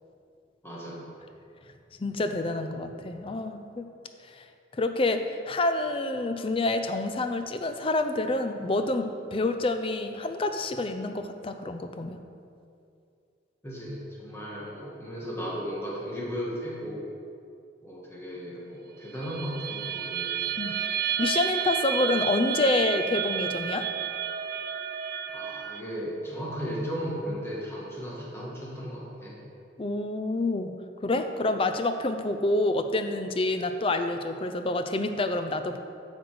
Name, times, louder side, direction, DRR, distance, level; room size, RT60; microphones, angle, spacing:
voice 1, 0.6-1.1 13.6-17.0 17.8-20.5 25.3-29.4, equal, 15° left, -5 dB, 1.4 m, -35 dB
voice 2, 2.0-3.9 4.3-4.4 4.7-12.2 20.6-20.7 21.2-23.9 29.8-30.8 31.0-35.8, left 2 dB, 30° left, 8 dB, 0.4 m, -28 dB
sound 1, 19.2-25.8, right 9 dB, 50° right, 0.3 m, -31 dB
7.9 x 6.3 x 4.8 m, 2.5 s
head